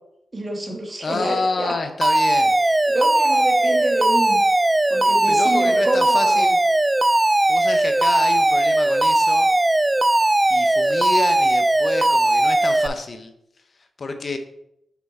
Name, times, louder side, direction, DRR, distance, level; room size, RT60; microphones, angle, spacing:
voice 1, 0.3-1.8 2.9-4.4 4.9-6.5, right 2 dB, 35° right, 1 dB, 1.8 m, -28 dB
voice 2, 1.0-2.6 5.3-6.6 7.5-9.5 10.5-13.3 14.0-14.4, left 3 dB, 55° left, 7 dB, 0.8 m, -29 dB
Alarm, 2.0-12.9, right 1 dB, 20° right, 0.3 m, -18 dB
6.0 x 4.4 x 4.2 m, 0.79 s
cardioid pair, 55°, 0 cm